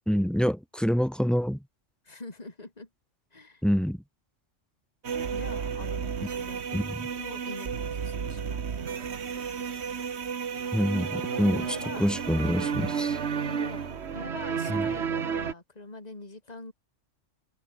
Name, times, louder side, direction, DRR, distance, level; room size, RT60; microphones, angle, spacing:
voice 1, 0.1-1.6 3.6-4.0 6.7-7.0 10.7-13.2 14.7-14.9, equal, ahead, 0.5 m, -26 dB
voice 2, 2.0-2.9 3.3-3.6 5.3-6.8 7.2-8.8 11.3-12.2 13.4-16.7, left 2 dB, 35° left, 3.0 m, -44 dB
sound 1, 5.0-15.5, right 7 dB, 65° right, 1.5 m, -32 dB
omnidirectional pair, 1.2 m